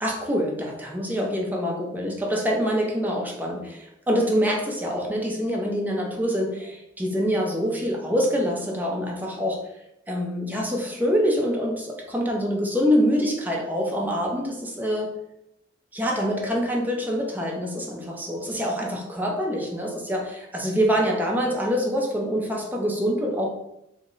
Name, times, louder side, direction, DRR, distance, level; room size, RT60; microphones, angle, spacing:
voice 1, 0.0-9.6 10.1-15.1 15.9-23.5, equal, 10° right, 0 dB, 0.6 m, -25 dB
4.1 x 2.0 x 3.8 m, 0.83 s
head